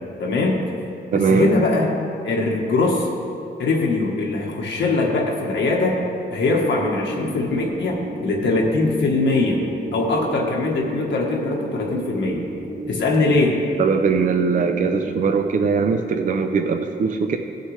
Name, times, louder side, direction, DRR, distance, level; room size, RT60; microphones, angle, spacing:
voice 1, 0.2-0.6 1.1-1.9 2.2-3.1 3.6-6.0 6.3-9.6 9.9-12.4 12.9-13.6, left 3 dB, 75° left, -2 dB, 1.3 m, -21 dB
voice 2, 1.1-1.5 13.8-17.4, right 5 dB, 45° right, 6 dB, 0.5 m, -20 dB
sound 1, 6.5-15.3, right 2 dB, 85° right, 2.5 m, -33 dB
16.5 x 6.5 x 3.2 m, 2.7 s
wide cardioid pair, 160°, 19 cm